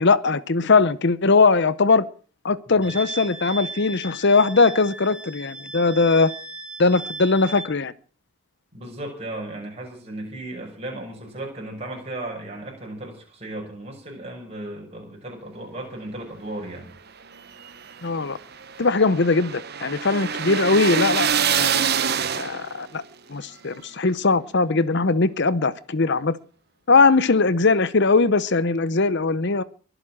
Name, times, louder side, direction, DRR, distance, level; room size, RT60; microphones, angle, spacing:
voice 1, 0.0-2.0 2.4-6.3 6.8-7.9 18.0-18.4 18.8-21.9 22.3-23.0 23.3-26.4 26.9-29.6, left 3 dB, 50° left, 0.8 m, -20 dB
Wind instrument woodwind instrument, 2.8-7.7, right 2 dB, 5° right, 2.3 m, -37 dB
voice 2, 8.7-16.9, right 1 dB, 25° right, 6.4 m, -35 dB
sound 1, 17.4-22.9, right 7 dB, 45° right, 1.0 m, -25 dB
23.0 x 8.0 x 7.5 m
head